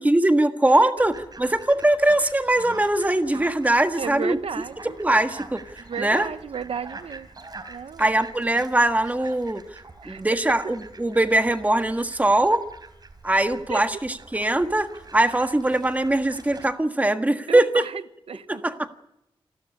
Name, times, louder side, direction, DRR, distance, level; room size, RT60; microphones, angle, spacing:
voice 1, 0.0-4.4 5.0-5.6 6.0-6.3 8.0-9.6 10.0-12.7 13.2-17.8 18.5-18.9, right 1 dB, 15° right, 7 dB, 1.6 m, -21 dB
Fowl, 1.0-16.7, right 3 dB, 45° right, 4.0 m, -44 dB
voice 2, 3.9-5.0 5.8-7.3 7.7-8.2 10.0-10.2 13.7-13.8 17.5-18.6, right 6 dB, 85° right, 12 dB, 1.0 m, -33 dB
28.5 x 12.5 x 10.0 m, 0.84 s
wide cardioid pair, 130°, 10 cm